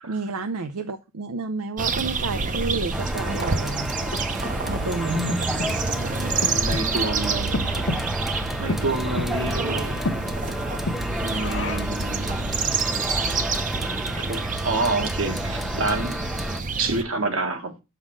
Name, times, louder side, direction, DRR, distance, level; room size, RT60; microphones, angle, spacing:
voice 1, 0.0-4.1 4.7-5.4, right 4 dB, 85° right, 0.6 m, -30 dB
sound 1, 1.8-17.0, right 4 dB, 35° right, 0.7 m, -28 dB
sound 2, 2.9-16.6, equal, ahead, 0.4 m, -32 dB
Breathing, 3.5-12.1, left 2 dB, 60° left, 0.9 m, -33 dB
voice 2, 5.1-7.9 8.3-10.0 11.2-12.7 14.2-16.2 16.8-17.7, right 2 dB, 65° right, 1.6 m, -29 dB
6.4 x 5.6 x 6.2 m
head